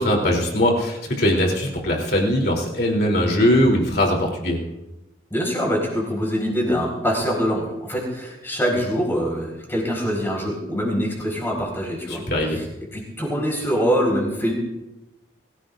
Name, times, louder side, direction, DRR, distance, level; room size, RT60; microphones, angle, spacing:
voice 1, 0.0-4.6 12.1-12.6, left 1 dB, 55° left, -1 dB, 3.3 m, -20 dB
voice 2, 5.3-12.2 12.5-12.6 12.9-14.5, equal, 10° left, -1 dB, 4.6 m, -24 dB
23.0 x 16.5 x 2.6 m, 0.97 s
head